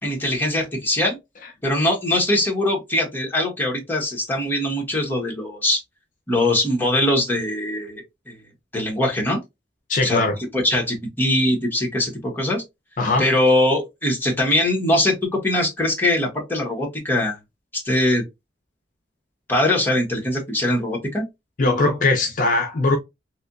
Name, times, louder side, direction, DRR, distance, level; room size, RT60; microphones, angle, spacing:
voice 1, 0.0-1.2 1.6-5.8 6.3-8.3 8.7-9.4 10.0-10.2 10.5-12.6 13.2-17.4 17.7-18.2 19.5-21.2, left 1 dB, 10° left, 1.1 m, -22 dB
voice 2, 9.9-10.4 13.0-13.3 21.6-23.0, left 3 dB, 45° left, 0.6 m, -20 dB
3.3 x 2.7 x 2.5 m
head